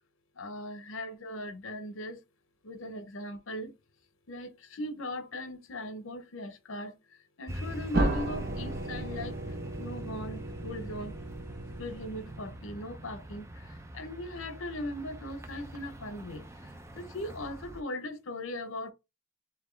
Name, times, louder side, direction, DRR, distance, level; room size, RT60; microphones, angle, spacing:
voice 1, 0.4-2.2 2.6-3.7 4.3-7.0 7.4-9.4 9.8-11.1 11.8-16.5 16.9-18.9, left 1 dB, 75° left, 0.7 m, -39 dB
sound 1, 7.5-17.8, right 1 dB, 15° right, 0.4 m, -43 dB
sound 2, 7.9-12.7, right 1 dB, 50° right, 0.7 m, -35 dB
4.1 x 3.1 x 3.2 m
head